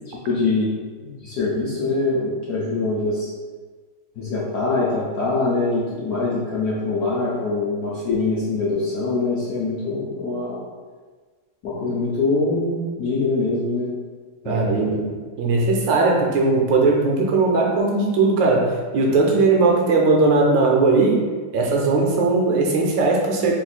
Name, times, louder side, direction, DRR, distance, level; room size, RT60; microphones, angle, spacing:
voice 1, 0.3-0.7 1.0-3.3 4.2-10.6 11.6-13.9 14.4-15.1, left 3 dB, 70° left, -7 dB, 0.9 m, -24 dB
voice 2, 14.5-15.1 15.4-21.2 21.5-23.5, right 3 dB, 75° right, -1 dB, 1.2 m, -18 dB
3.3 x 2.5 x 4.1 m, 1.4 s
omnidirectional pair, 2.2 m